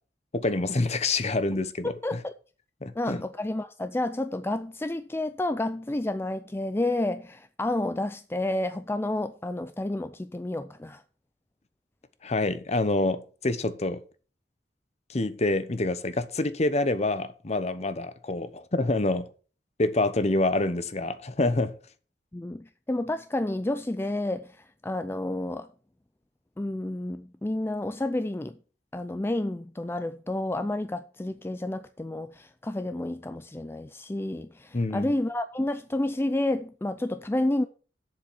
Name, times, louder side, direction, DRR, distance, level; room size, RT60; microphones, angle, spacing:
voice 1, 0.3-2.2 2.8-3.2 12.2-14.0 15.1-19.3 19.8-21.8 34.7-35.1, left 2 dB, 40° left, 0.9 m, -27 dB
voice 2, 2.0-2.3 3.0-11.0 22.3-25.7 26.6-28.6 28.9-37.7, left 1 dB, 15° left, 0.4 m, -30 dB
7.6 x 7.0 x 7.2 m
head